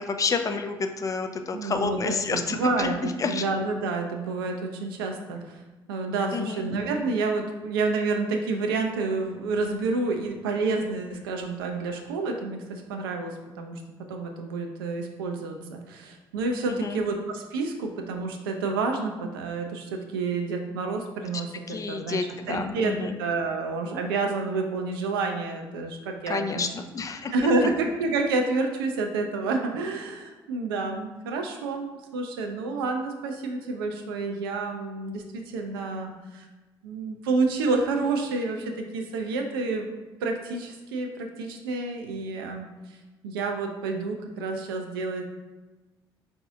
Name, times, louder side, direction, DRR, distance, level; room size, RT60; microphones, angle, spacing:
voice 1, 0.0-3.4 6.3-6.7 16.7-17.0 21.7-23.2 26.3-26.7 26.9-27.3, left 4 dB, 30° left, 6 dB, 0.4 m, -29 dB
voice 2, 1.5-5.6 5.9-13.8 14.1-26.6 27.3-36.5 36.8-39.9 40.2-42.7 43.2-45.2, right 3 dB, 75° right, 4 dB, 0.4 m, -29 dB
4.6 x 2.6 x 2.4 m, 1.2 s
figure-of-eight pair, 45°, 12 cm